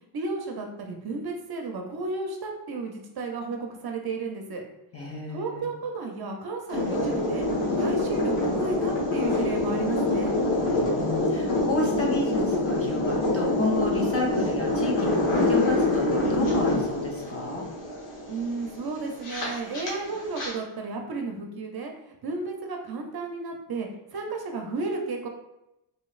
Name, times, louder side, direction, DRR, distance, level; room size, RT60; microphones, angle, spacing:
voice 1, 0.1-4.6 5.3-7.4 7.8-10.3 18.3-21.9 22.2-25.3, right 3 dB, 50° right, 2 dB, 0.6 m, -33 dB
voice 2, 4.9-5.7 10.6-17.7, left 1 dB, 30° left, -1 dB, 0.7 m, -30 dB
sound 1, 6.7-20.5, left 2 dB, 80° left, 1.3 m, -26 dB
4.2 x 3.0 x 2.4 m, 0.89 s
cardioid pair, 105°, 50 cm